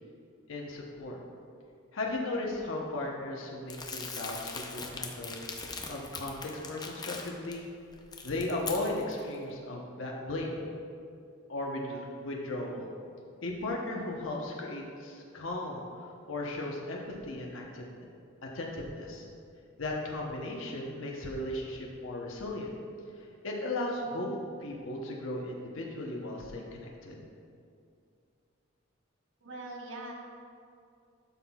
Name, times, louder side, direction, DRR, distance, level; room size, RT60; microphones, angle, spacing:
voice 1, 0.5-1.2 1.9-5.4 5.9-7.7 8.2-10.6 11.5-12.9 13.4-17.9 18.5-19.3 19.8-22.7 23.4-24.3 24.6-27.2, left 2 dB, 85° left, -2 dB, 0.9 m, -36 dB
Crumpling crinkling, 3.7-7.5 7.9-9.2, left 4 dB, 20° left, 0.6 m, -41 dB
voice 2, 29.4-30.1, right 2 dB, 70° right, -2 dB, 1.3 m, -41 dB
12.0 x 5.8 x 2.4 m, 2.4 s
head